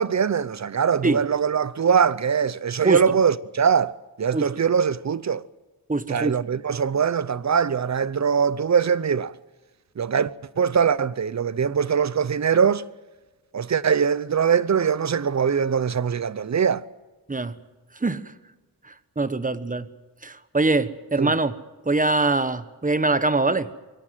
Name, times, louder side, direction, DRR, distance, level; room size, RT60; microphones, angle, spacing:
voice 1, 0.0-5.4 6.1-9.3 10.0-12.8 13.5-16.8 21.2-21.3, right 7 dB, 50° right, 0.7 m, -22 dB
voice 2, 2.8-3.1 4.3-4.5 5.9-6.4 17.3-17.6 18.0-18.2 19.2-19.9 20.2-21.5 21.9-23.7, right 3 dB, 20° right, 1.2 m, -23 dB
22.0 x 17.5 x 7.7 m
wide cardioid pair, 90°, 37 cm